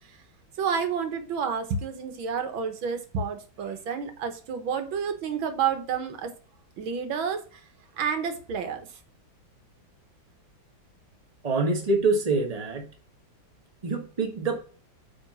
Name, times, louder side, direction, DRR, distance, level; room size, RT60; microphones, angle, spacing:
voice 1, 0.6-6.3 6.8-7.6 8.0-8.8, right 6 dB, 90° right, 7 dB, 2.0 m, -30 dB
voice 2, 11.4-12.9 13.8-14.6, right 3 dB, 20° right, 3 dB, 1.5 m, -25 dB
8.8 x 3.7 x 6.1 m, 0.40 s
omnidirectional pair, 2.1 m